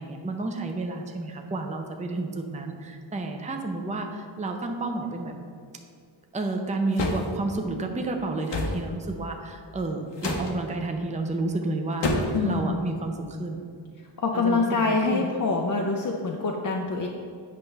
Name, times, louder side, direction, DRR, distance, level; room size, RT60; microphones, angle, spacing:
voice 1, 0.0-5.3 6.3-13.6 14.3-15.3, right 2 dB, 15° right, 3 dB, 0.6 m, -31 dB
sound 1, 7.0-7.3 8.5-8.8 10.2-10.5 12.0-12.4, left 2 dB, 60° left, 1.0 m, -27 dB
voice 2, 12.3-12.8 14.2-17.1, left 3 dB, 40° left, 1 dB, 0.5 m, -25 dB
8.4 x 5.8 x 3.3 m, 2.2 s
wide cardioid pair, 115°, 47 cm